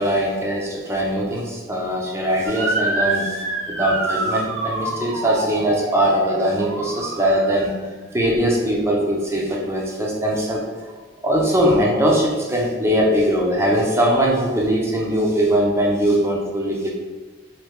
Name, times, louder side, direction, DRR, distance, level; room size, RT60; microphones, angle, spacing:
voice 1, 0.0-7.7 8.1-10.6 11.2-16.9, equal, 15° right, -2 dB, 0.5 m, -21 dB
Motor vehicle (road) / Siren, 2.4-7.7, right 2 dB, 75° right, 0.7 m, -27 dB
3.2 x 3.1 x 3.5 m, 1.3 s
head